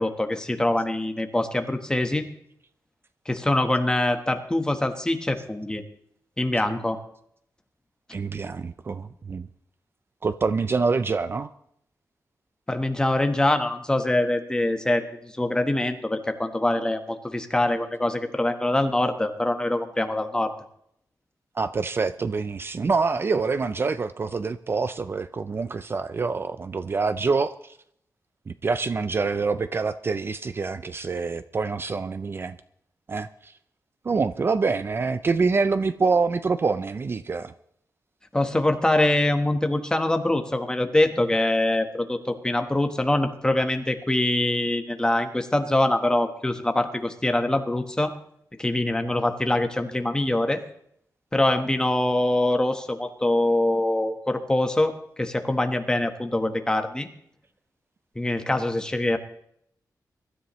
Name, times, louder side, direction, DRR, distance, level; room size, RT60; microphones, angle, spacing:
voice 1, 0.0-2.2 3.3-5.8 6.4-7.0 12.7-20.5 38.3-48.1 48.6-50.6 51.3-54.9 55.2-57.1 58.1-59.2, left 1 dB, 10° left, 6 dB, 1.2 m, -24 dB
voice 2, 8.1-9.5 10.2-11.5 21.6-27.8 28.6-32.6 33.1-33.5 34.0-37.5, right 4 dB, 35° right, 12 dB, 0.4 m, -26 dB
23.5 x 13.0 x 3.1 m, 0.71 s
wide cardioid pair, 165°, 7 cm